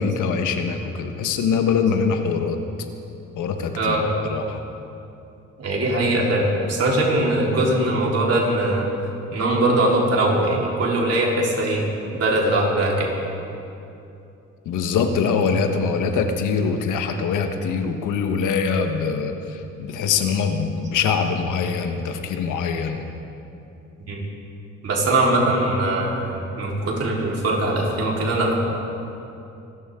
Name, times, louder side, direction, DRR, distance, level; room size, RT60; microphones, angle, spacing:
voice 1, 0.0-2.6 3.4-4.0 4.3-4.6 14.6-23.0, left 5 dB, 85° left, 6 dB, 1.4 m, -23 dB
voice 2, 5.6-8.9 9.3-11.9 12.1-13.1 24.0-24.3 24.8-28.5, right 1 dB, 55° right, -3 dB, 4.2 m, -21 dB
26.5 x 13.0 x 3.8 m, 2.8 s
cardioid pair, 90°, 30 cm